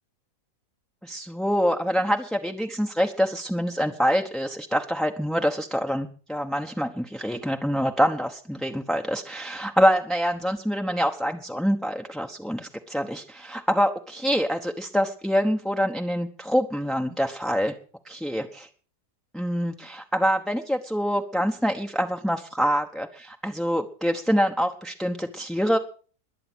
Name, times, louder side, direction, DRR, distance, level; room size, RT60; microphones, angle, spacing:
voice 1, 1.0-17.7 18.1-18.7 19.3-25.8, equal, ahead, 3 dB, 0.7 m, -25 dB
21.5 x 8.6 x 6.1 m, 0.41 s
omnidirectional pair, 1.7 m